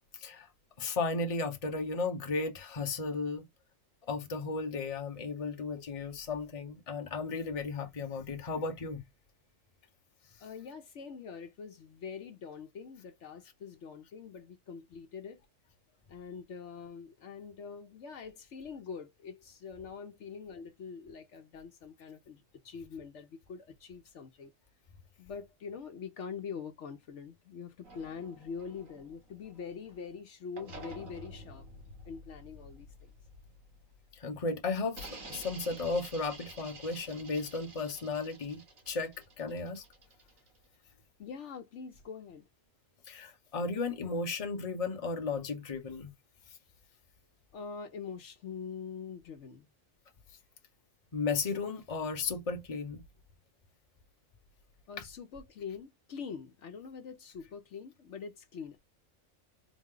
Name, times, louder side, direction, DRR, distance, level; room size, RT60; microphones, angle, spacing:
voice 1, 0.8-3.5 4.1-9.0 34.2-39.8 43.1-46.1 51.1-53.0 55.0-55.1, left 4 dB, 30° left, 0.9 m, -35 dB
voice 2, 10.4-15.4 16.1-24.5 25.2-31.6 32.1-33.1 41.2-42.5 47.5-49.7 54.9-58.8, left 6 dB, 65° left, 1.0 m, -44 dB
sound 1, 27.8-30.1 30.6-34.2 34.9-40.7, right 1 dB, 80° right, 2.0 m, -50 dB
4.0 x 2.1 x 3.6 m
omnidirectional pair, 1.4 m